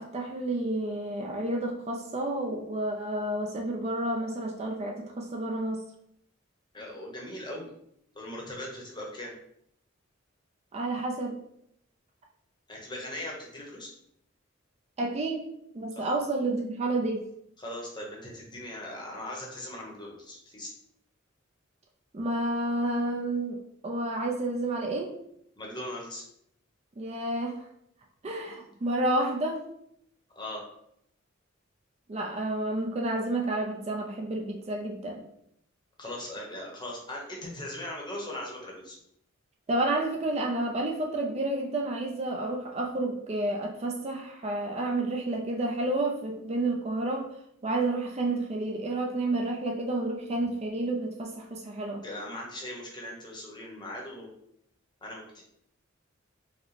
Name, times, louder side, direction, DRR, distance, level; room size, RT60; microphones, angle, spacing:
voice 1, 0.0-5.9 10.7-11.4 15.0-15.5 15.7-17.2 22.1-25.2 27.0-27.6 28.2-29.6 32.1-35.2 39.7-47.3 47.6-52.0, right 2 dB, 30° right, 1 dB, 0.4 m, -30 dB
voice 2, 6.7-7.7 8.1-9.3 12.7-13.9 16.0-16.1 17.6-20.7 25.6-26.2 30.4-30.6 36.0-39.0 52.0-54.3 55.0-55.3, left 1 dB, 25° left, -1 dB, 0.9 m, -39 dB
4.8 x 2.1 x 3.2 m, 0.73 s
head